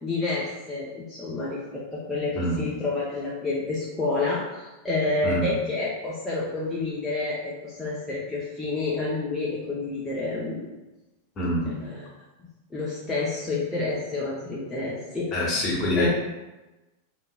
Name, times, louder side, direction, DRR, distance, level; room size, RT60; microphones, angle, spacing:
voice 1, 0.0-10.7 11.7-12.0 12.7-15.3 16.0-16.1, left 3 dB, 10° left, -7 dB, 0.7 m, -29 dB
voice 2, 2.3-2.7 5.2-5.5 11.3-11.7 15.3-16.1, left 1 dB, 30° left, -3 dB, 1.1 m, -25 dB
5.4 x 2.7 x 2.3 m, 1.1 s
figure-of-eight pair, 90°, 0 cm